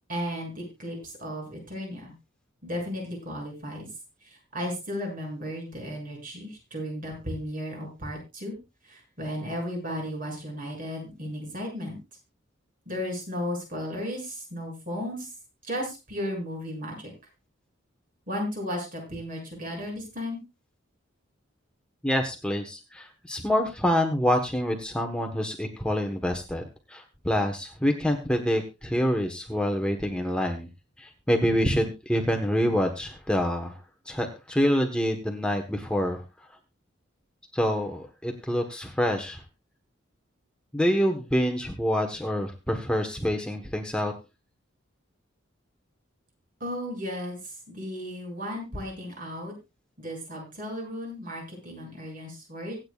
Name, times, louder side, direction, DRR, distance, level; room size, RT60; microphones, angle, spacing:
voice 1, 0.1-2.1 2.6-3.9 4.2-8.6 8.8-12.0 12.9-15.3 15.6-17.1 18.3-20.4 46.6-49.5 50.0-52.8, equal, 45° right, 1 dB, 7.4 m, -34 dB
voice 2, 22.0-30.7 31.0-33.8 34.0-36.2 37.5-39.4 40.7-44.1, equal, 5° left, 3 dB, 1.3 m, -26 dB
24.5 x 8.9 x 2.4 m, 0.27 s
head